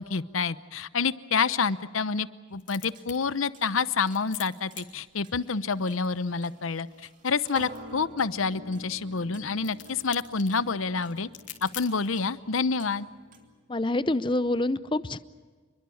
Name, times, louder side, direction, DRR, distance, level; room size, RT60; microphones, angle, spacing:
voice 1, 0.0-6.9 7.2-11.3 11.6-13.1, left 5 dB, 90° left, 15 dB, 0.8 m, -28 dB
sound 1, 2.5-12.3, left 12 dB, 65° left, 3.3 m, -49 dB
sound 2, 3.0-3.1 3.5-3.6 4.1-4.2 4.7-5.0 5.2-13.6, right 1 dB, 40° right, 2.9 m, -48 dB
voice 2, 13.7-15.2, left 2 dB, 25° left, 14 dB, 0.6 m, -26 dB
28.0 x 22.0 x 7.2 m, 1.5 s
head